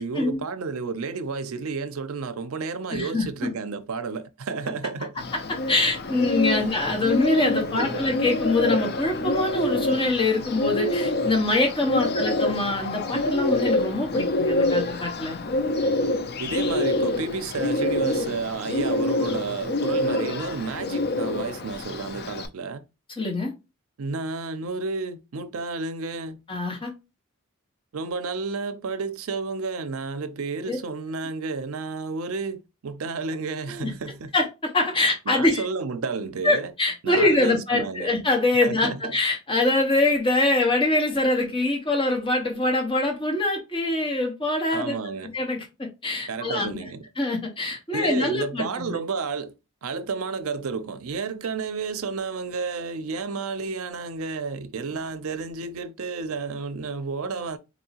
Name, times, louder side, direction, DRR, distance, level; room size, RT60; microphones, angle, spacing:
voice 1, 0.0-5.2 7.7-8.1 12.0-12.3 16.4-22.8 24.0-26.4 27.9-34.3 35.3-36.7 37.0-38.1 38.6-39.2 44.7-45.3 46.3-47.0 47.9-49.5 49.8-57.6, right 4 dB, 75° right, 0.5 m, -31 dB
voice 2, 2.9-3.5 5.5-15.4 23.2-23.5 26.5-26.9 30.7-30.8 33.7-33.9 34.3-35.6 36.4-45.0 45.3-46.8 47.2-49.0, left 2 dB, 25° left, 0.9 m, -24 dB
Bird, 5.2-22.5, left 2 dB, 45° left, 0.5 m, -26 dB
4.2 x 2.7 x 2.8 m
head